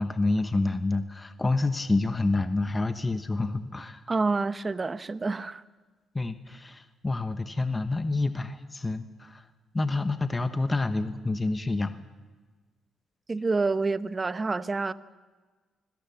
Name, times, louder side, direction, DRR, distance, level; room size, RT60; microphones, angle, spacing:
voice 1, 0.0-4.0 6.1-9.4 9.7-12.0, left 2 dB, 20° left, 1.1 m, -28 dB
voice 2, 4.1-5.6 13.3-14.9, right 3 dB, 30° right, 0.8 m, -28 dB
24.0 x 17.0 x 7.2 m
cardioid pair, 90°, 0 cm